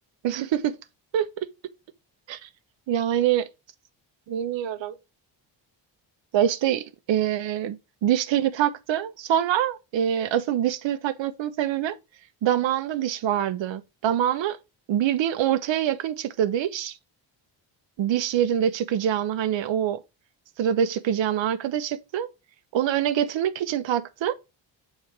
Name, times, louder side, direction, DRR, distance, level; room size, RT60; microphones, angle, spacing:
voice 1, 0.2-0.8 1.1-1.5 2.3-2.5 2.9-3.5 4.3-5.0 6.3-12.0 12.4-14.6 14.9-17.0 18.0-20.0 20.6-22.3 22.7-24.3, right 10 dB, 80° right, 1.0 m, -25 dB
7.5 x 4.3 x 4.7 m
wide cardioid pair, 165°, 44 cm